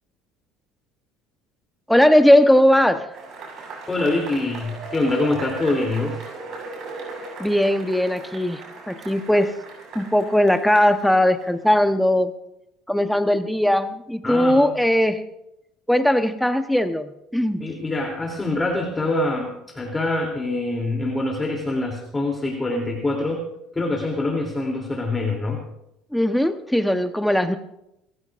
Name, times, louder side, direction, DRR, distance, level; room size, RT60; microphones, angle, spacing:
voice 1, 1.9-3.1 7.4-8.6 8.9-9.5 9.9-12.3 12.9-15.2 15.9-17.6 26.1-27.6, left 1 dB, ahead, 8 dB, 1.0 m, -19 dB
Cheering / Applause / Crowd, 3.1-11.8, right 3 dB, 55° right, 7.9 m, -38 dB
voice 2, 3.9-6.2 14.2-14.7 17.6-23.4 23.7-25.6, left 2 dB, 20° left, 0 dB, 3.1 m, -25 dB
28.0 x 14.5 x 2.6 m, 0.83 s
supercardioid pair, 90°, 0 cm